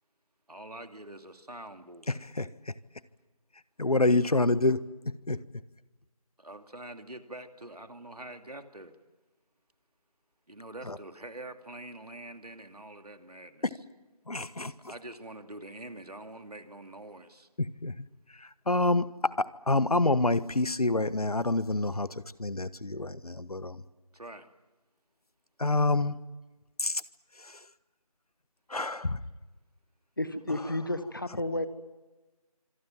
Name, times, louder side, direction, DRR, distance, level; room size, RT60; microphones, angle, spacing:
voice 1, 0.5-2.2 6.4-9.0 10.5-13.7 14.6-17.5 24.1-24.5, right 1 dB, 85° right, 7 dB, 2.7 m, -45 dB
voice 2, 2.1-2.7 3.8-5.4 10.9-11.0 14.3-14.7 17.6-18.1 18.4-23.8 25.6-26.2 26.8-27.0 27.4-27.6 28.7-29.2, left 2 dB, 75° left, 16 dB, 1.3 m, -28 dB
voice 3, 30.2-31.7, left 1 dB, 35° left, 12 dB, 1.3 m, -31 dB
26.0 x 22.5 x 7.6 m, 1.2 s
figure-of-eight pair, 175°, 19 cm